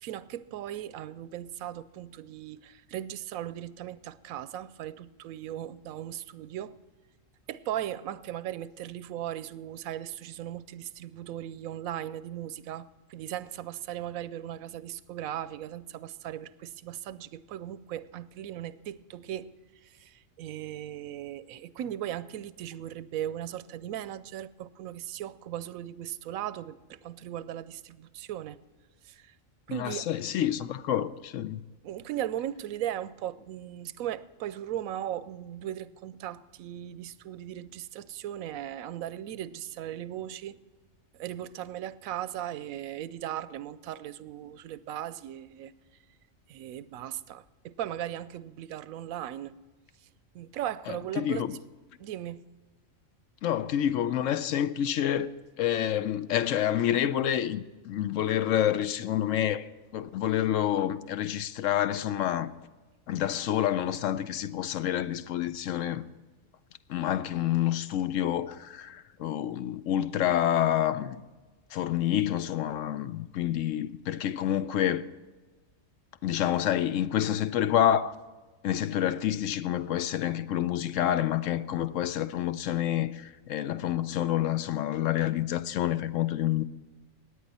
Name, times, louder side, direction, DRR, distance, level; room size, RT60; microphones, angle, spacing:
voice 1, 0.0-6.8 7.5-19.5 19.8-28.6 29.0-29.4 29.7-30.1 31.8-40.6 41.1-45.7 46.5-49.6 50.0-50.1 50.3-51.6 52.0-52.5, right 11 dB, 90° right, 1.0 m, -38 dB
voice 2, 29.7-31.6 51.2-51.5 53.4-55.3 55.6-59.6 59.9-62.5 63.1-66.1 66.9-71.2 71.7-75.0 76.2-78.1 78.6-86.6, left 11 dB, 75° left, 0.9 m, -28 dB
17.0 x 9.6 x 4.2 m
omnidirectional pair, 1.4 m